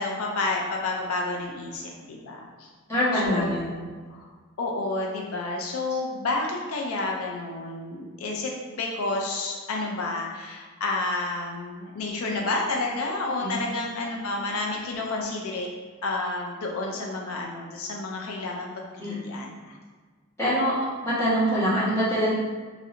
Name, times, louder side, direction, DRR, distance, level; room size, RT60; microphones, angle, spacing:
voice 1, 0.0-2.7 3.1-3.8 4.1-4.3 4.6-15.7 16.0-19.8, left 2 dB, 85° left, 0 dB, 0.4 m, -30 dB
voice 2, 2.9-3.6 13.4-13.5 19.0-19.1 20.4-20.7 21.0-22.3, equal, 15° left, -12 dB, 1.2 m, -24 dB
3.1 x 2.7 x 2.5 m, 1.5 s
head